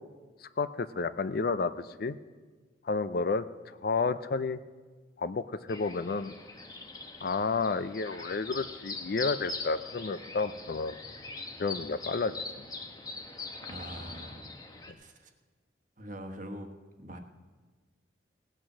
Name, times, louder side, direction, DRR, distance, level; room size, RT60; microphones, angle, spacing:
voice 1, 0.6-2.2 2.8-4.6 5.2-6.3 7.2-11.0 11.6-12.4, left 4 dB, 55° left, 13 dB, 0.5 m, -31 dB
sound 1, 5.7-14.9, left 3 dB, 20° left, 1.0 m, -42 dB
voice 2, 13.6-14.5 15.0-15.3 16.0-16.7 17.0-17.2, equal, 45° right, 5 dB, 1.2 m, -43 dB
17.0 x 8.9 x 6.2 m, 1.4 s
head